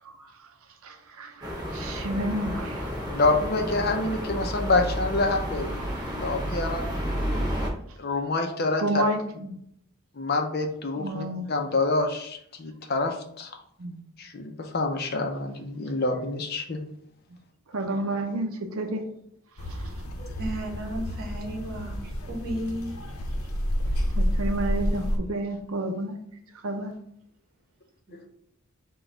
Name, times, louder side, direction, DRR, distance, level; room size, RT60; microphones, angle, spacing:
voice 1, 0.8-2.9 8.8-9.5 11.0-11.5 13.8-14.0 17.7-19.0 19.7-19.8 24.2-26.2 26.6-26.9, right 1 dB, 70° right, 5 dB, 0.6 m, -30 dB
sound 1, 1.4-7.7, equal, 15° right, 0.8 m, -31 dB
voice 2, 3.1-5.8 6.1-6.9 8.0-9.0 10.2-13.5 14.2-16.8 20.2-20.4 28.1-28.3, left 3 dB, 45° left, 4 dB, 0.6 m, -27 dB
sound 2, 19.6-25.2, equal, 85° left, 0.8 m, -29 dB
voice 3, 20.4-23.0 23.3-23.4, equal, 45° right, -1 dB, 1.3 m, -34 dB
6.0 x 2.3 x 3.8 m, 0.70 s
head